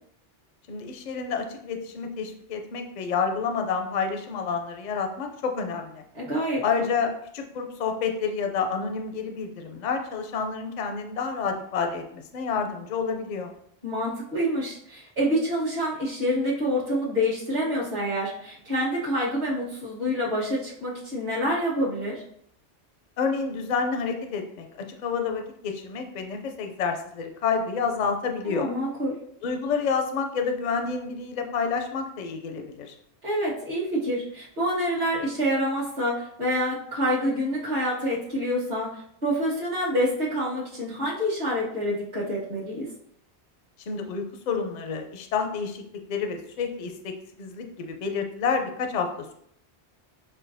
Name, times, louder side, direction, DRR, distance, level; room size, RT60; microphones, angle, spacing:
voice 1, 0.7-6.0 6.6-13.5 23.2-28.7 29.4-32.9 43.9-45.8 46.1-47.1 47.4-49.3, left 5 dB, 55° left, 5 dB, 0.5 m, -29 dB
voice 2, 6.1-7.0 13.8-22.2 28.5-29.2 33.2-42.9, equal, 45° right, -9 dB, 1.2 m, -27 dB
6.2 x 2.2 x 2.6 m, 0.68 s
omnidirectional pair, 1.1 m